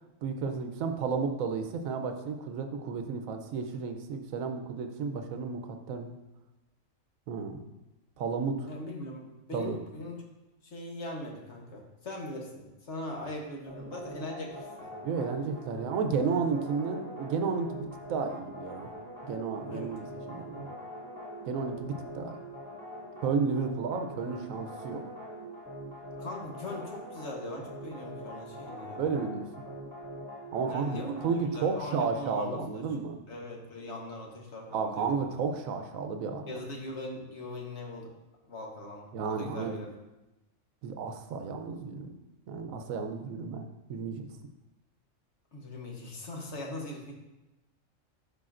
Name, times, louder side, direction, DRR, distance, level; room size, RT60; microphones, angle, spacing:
voice 1, 0.2-5.6 5.9-6.2 7.3-7.6 8.2-8.7 9.5-9.8 15.0-18.9 19.2-20.7 21.4-22.4 23.2-25.0 29.0-29.5 30.5-33.2 34.7-36.5 39.1-39.8 40.8-42.1 42.5-44.3, right 5 dB, 85° right, 6 dB, 1.1 m, -32 dB
voice 2, 8.6-10.2 10.6-14.9 19.7-20.1 26.2-29.1 30.7-32.9 33.3-35.4 36.5-38.1 38.4-39.9 45.5-47.1, left 1 dB, 60° left, 0 dB, 1.4 m, -41 dB
sound 1, 13.7-31.6, equal, 10° right, 2.3 m, -43 dB
11.5 x 5.5 x 2.5 m, 1.0 s
omnidirectional pair, 1.4 m